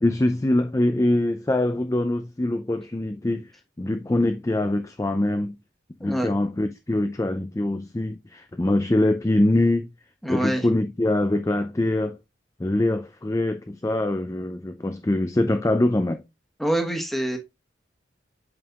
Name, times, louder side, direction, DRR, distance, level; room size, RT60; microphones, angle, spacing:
voice 1, 0.0-3.5 3.8-5.6 6.0-9.9 10.3-12.2 12.6-16.2, left 1 dB, 15° left, 0.4 m, -23 dB
voice 2, 10.2-10.6 16.6-17.4, right 1 dB, ahead, 1.2 m, -25 dB
8.0 x 5.2 x 2.3 m
head